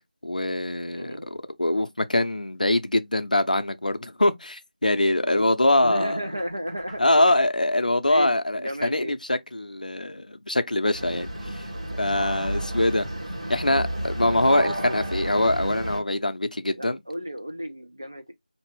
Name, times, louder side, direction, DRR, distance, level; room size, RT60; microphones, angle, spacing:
voice 1, 0.2-6.2 7.0-11.6 12.0-13.1 13.5-17.0, left 1 dB, 65° left, 0.6 m, -23 dB
voice 2, 0.9-1.4 5.2-5.5 5.8-7.1 8.1-9.1 16.7-18.3, equal, 25° right, 0.4 m, -33 dB
Knock, 6.4-7.5, right 1 dB, 10° right, 1.0 m, -47 dB
sound 1, 10.9-16.0, right 1 dB, 45° right, 1.3 m, -31 dB
2.8 x 2.6 x 3.1 m
figure-of-eight pair, 180°, 5 cm